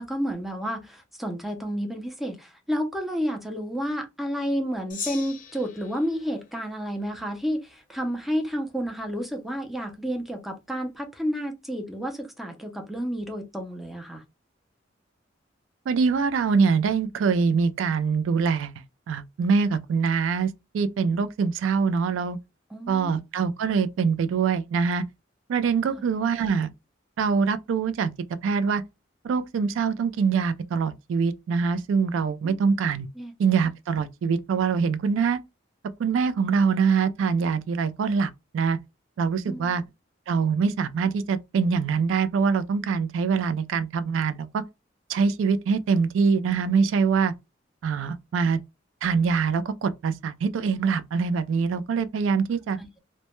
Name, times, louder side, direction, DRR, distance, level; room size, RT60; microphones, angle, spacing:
voice 1, 0.0-14.2 22.7-23.1 26.0-26.1 32.4-32.6 33.2-33.3 39.4-39.8 52.8-53.0, equal, ahead, 0.4 m, -31 dB
Gong, 4.9-7.5, left 6 dB, 45° left, 0.6 m, -40 dB
voice 2, 15.9-18.7 19.1-22.4 22.9-25.0 25.5-26.7 27.2-28.1 28.4-28.8 29.2-33.1 33.4-35.4 36.0-38.8 39.2-39.8 40.3-44.6 45.1-47.3 47.8-48.6 49.0-52.8, right 5 dB, 85° right, 0.3 m, -24 dB
2.1 x 2.1 x 2.9 m
head